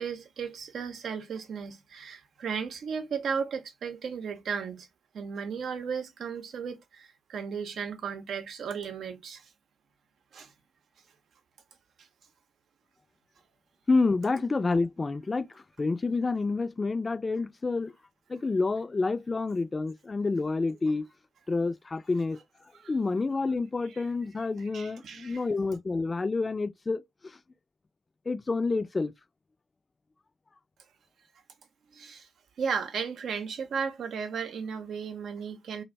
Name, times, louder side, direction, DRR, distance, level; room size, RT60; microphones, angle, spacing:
voice 1, 0.0-4.9 5.1-9.5 10.3-10.5 22.7-22.9 23.9-24.1 24.7-25.5 31.9-32.3 32.6-35.8, right 6 dB, 65° right, 0.6 m, -35 dB
voice 2, 13.9-15.5 15.8-17.9 18.3-21.1 21.5-22.4 22.9-27.0 28.3-29.1, left 3 dB, 35° left, 0.4 m, -28 dB
2.5 x 2.1 x 3.2 m
hypercardioid pair, 45°, 0 cm